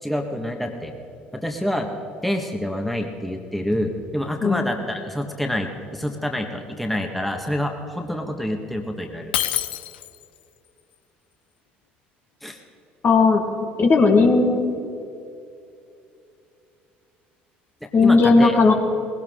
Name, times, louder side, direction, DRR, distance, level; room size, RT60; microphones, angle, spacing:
voice 1, 0.0-0.9 1.3-1.9 2.2-9.3 12.4-12.6 17.8-18.6, left 1 dB, ahead, 3 dB, 1.6 m, -27 dB
Shatter, 9.3-10.4, left 12 dB, 80° left, 0.5 m, -26 dB
voice 2, 13.0-13.4 13.8-14.6 17.9-18.7, left 4 dB, 40° left, 3 dB, 1.7 m, -15 dB
19.0 x 16.5 x 3.8 m, 2.6 s
hypercardioid pair, 60°, 5 cm